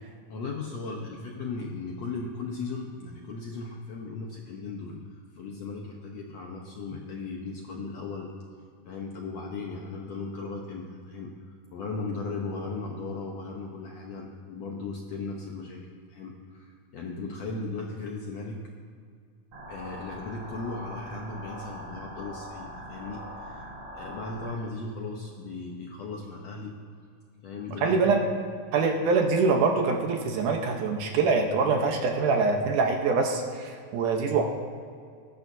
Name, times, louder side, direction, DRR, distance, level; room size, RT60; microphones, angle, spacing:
voice 1, 0.3-8.3 8.9-11.3 11.7-18.6 19.7-26.8 27.4-28.2, left 3 dB, 70° left, -1 dB, 1.7 m, -37 dB
sound 1, 19.5-24.5, equal, 45° right, 1.7 m, -42 dB
voice 2, 27.8-28.2 28.7-34.4, right 4 dB, 70° right, 2 dB, 2.3 m, -24 dB
20.0 x 11.0 x 2.7 m, 2.2 s
omnidirectional pair, 4.1 m